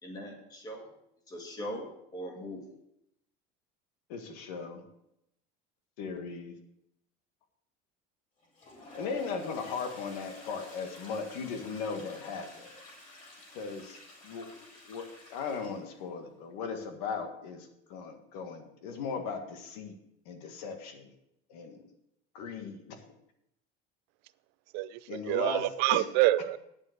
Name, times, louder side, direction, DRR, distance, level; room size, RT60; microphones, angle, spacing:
voice 1, 0.0-0.9 1.3-2.6, equal, 20° left, 2 dB, 2.0 m, -40 dB
voice 2, 4.1-4.8 6.0-6.5 8.9-12.8 13.5-20.0 20.3-21.1 21.5-21.8 22.3-23.0 25.1-25.6 25.9-26.0, left 5 dB, 90° left, 6 dB, 1.8 m, -38 dB
Toilet flush, 8.4-16.0, left 2 dB, 40° left, 4.6 m, -51 dB
voice 3, 24.7-26.6, right 16 dB, 60° right, 16 dB, 0.4 m, -27 dB
9.7 x 7.3 x 6.6 m, 0.79 s
cardioid pair, 170°, 20 cm